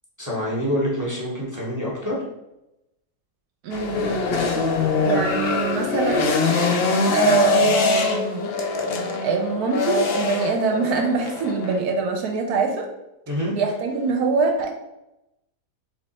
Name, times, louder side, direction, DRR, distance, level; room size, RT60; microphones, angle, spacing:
voice 1, 0.2-2.2 13.3-13.5, equal, 20° right, -5 dB, 0.6 m, -26 dB
voice 2, 3.6-4.1 5.0-6.3 7.1-8.5 9.2-12.9 13.5-14.7, right 4 dB, 75° right, 2 dB, 1.1 m, -23 dB
sound 1, 3.7-11.8, left 3 dB, 75° left, 0.5 m, -23 dB
3.4 x 3.2 x 4.0 m, 0.92 s
omnidirectional pair, 1.7 m